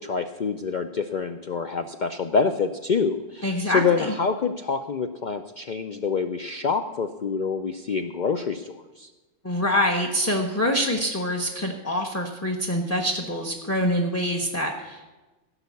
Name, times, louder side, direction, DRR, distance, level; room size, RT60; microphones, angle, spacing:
voice 1, 0.0-9.1, left 5 dB, 60° left, 7 dB, 0.5 m, -26 dB
voice 2, 3.4-4.1 9.4-15.1, left 1 dB, 15° left, 3 dB, 0.9 m, -25 dB
16.0 x 5.6 x 8.3 m, 1.2 s
omnidirectional pair, 1.4 m